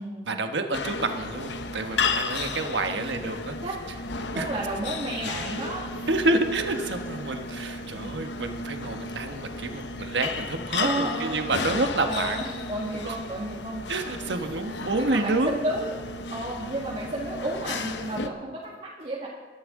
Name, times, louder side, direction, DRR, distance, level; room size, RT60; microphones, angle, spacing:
voice 1, 0.3-3.6 4.3-4.5 6.1-12.4 13.0-13.2 13.9-15.5, right 2 dB, 85° right, 6 dB, 1.2 m, -28 dB
sound 1, 0.7-18.3, left 4 dB, 80° left, 0.8 m, -34 dB
voice 2, 2.3-2.7 3.0-3.2 3.6-4.0 4.3-6.1 7.9-8.1 10.8-11.4 12.0-13.8 14.3-14.4 14.9-15.9 16.3-19.3, right 1 dB, 35° right, -6 dB, 1.9 m, -32 dB
21.5 x 11.0 x 3.7 m, 1.4 s
head